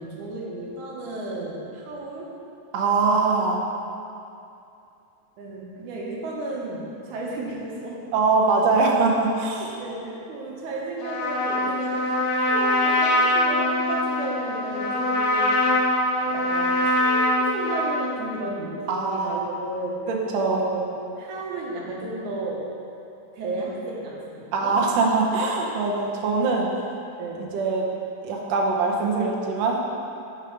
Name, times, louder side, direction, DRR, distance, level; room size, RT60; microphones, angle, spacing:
voice 1, 0.0-2.3 5.4-8.1 9.6-15.9 16.2-20.1 20.5-22.7 23.3-24.8 26.6-26.8 27.2-27.5, right 2 dB, 70° right, -3 dB, 2.2 m, -33 dB
voice 2, 2.7-3.6 8.1-9.6 18.9-19.4 20.1-20.6 24.5-26.7 27.5-27.9 28.2-29.8, right 3 dB, 85° right, -1 dB, 1.4 m, -22 dB
Trumpet, 11.0-18.2, left 1 dB, 80° left, 2.3 m, -23 dB
6.3 x 5.2 x 5.7 m, 2.6 s
omnidirectional pair, 4.0 m